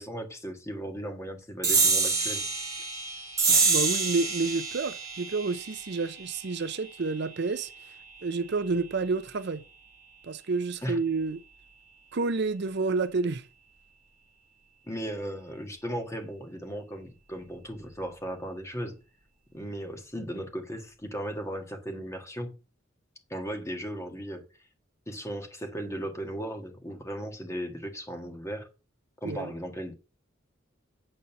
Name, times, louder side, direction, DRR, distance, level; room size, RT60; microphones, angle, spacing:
voice 1, 0.0-2.4 10.8-11.0 14.9-19.0 19.5-22.5 23.3-24.4 25.1-28.7 29.2-29.9, equal, 15° left, 1.7 m, -36 dB
sound 1, 1.6-8.5, right 4 dB, 20° right, 2.3 m, -28 dB
voice 2, 3.5-7.7 8.2-9.6 10.2-11.4 12.1-13.5 29.2-29.5, right 3 dB, 60° right, 0.6 m, -29 dB
8.9 x 4.0 x 6.9 m
head